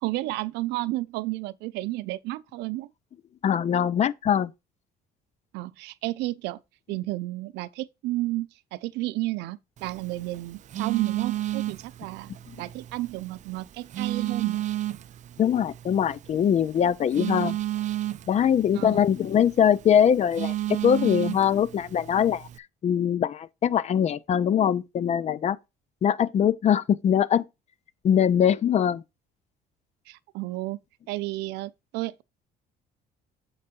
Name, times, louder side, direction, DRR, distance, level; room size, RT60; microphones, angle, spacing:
voice 1, 0.0-2.9 5.5-6.6 6.9-12.3 12.6-14.6 18.7-19.0 30.1-30.8 31.1-32.2, right 18 dB, 90° right, 0.6 m, -32 dB
voice 2, 3.4-4.5 12.5-12.6 15.4-17.6 18.3-20.5 20.8-22.5 22.8-25.6 26.0-27.4 28.0-29.0, left 9 dB, 40° left, 0.6 m, -22 dB
Telephone, 9.8-22.6, right 13 dB, 45° right, 0.5 m, -33 dB
7.6 x 4.8 x 4.3 m
cardioid pair, 110°, 17 cm